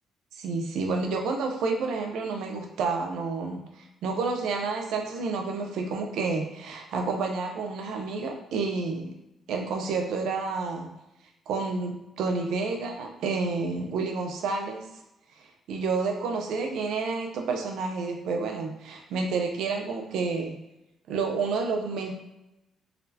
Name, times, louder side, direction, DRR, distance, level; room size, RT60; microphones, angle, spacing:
voice 1, 0.4-3.6 4.0-9.2 9.5-10.9 11.5-14.9 15.7-20.6 21.1-22.1, right 4 dB, 80° right, 3 dB, 0.5 m, -29 dB
4.1 x 2.1 x 2.7 m, 0.90 s
cardioid pair, 90°, 0 cm